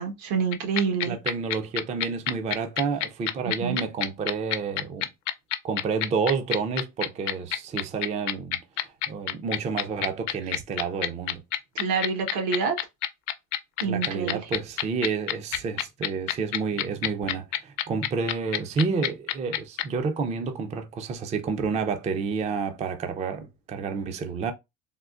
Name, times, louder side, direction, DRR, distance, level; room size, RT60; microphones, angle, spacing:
voice 1, 0.0-1.2 3.4-3.8 11.7-12.8 13.8-14.4, right 6 dB, 80° right, 1.2 m, -27 dB
sound 1, 0.5-19.8, left 14 dB, 60° left, 0.5 m, -27 dB
voice 2, 1.0-5.1 5.6-11.4 13.8-24.5, right 5 dB, 20° right, 0.4 m, -30 dB
3.6 x 2.4 x 2.4 m
cardioid pair, 130°, 33 cm